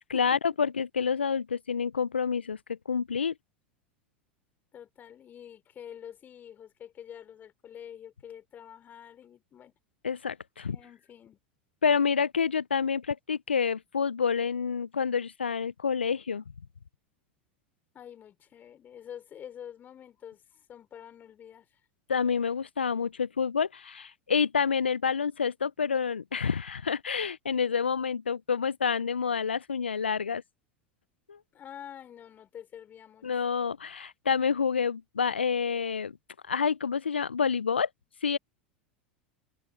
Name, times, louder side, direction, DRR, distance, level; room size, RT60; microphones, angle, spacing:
voice 1, 0.1-3.3 10.0-10.8 11.8-16.4 22.1-30.4 31.3-31.4 33.2-36.2 36.5-37.9 38.2-38.4, left 6 dB, 85° left, 0.5 m, -28 dB
voice 2, 4.7-9.7 10.7-11.4 17.9-21.7 31.5-33.4, left 9 dB, 35° left, 5.5 m, -47 dB
figure-of-eight pair, 85°, 6 cm